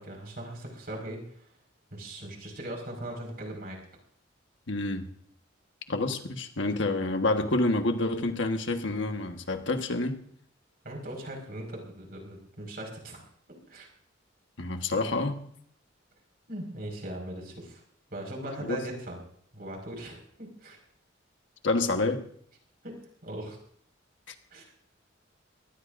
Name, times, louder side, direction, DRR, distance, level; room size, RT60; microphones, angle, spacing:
voice 1, 0.0-1.4 1.9-3.8 10.8-13.2 13.7-13.9 16.5-17.8 18.1-19.2 19.5-20.8 22.8-23.6 24.5-24.6, right 1 dB, 50° right, 5.2 m, -39 dB
voice 2, 4.7-5.1 5.9-10.2 14.6-15.4 18.6-18.8 21.6-22.3, left 2 dB, 70° left, 1.4 m, -28 dB
23.5 x 19.0 x 2.6 m
head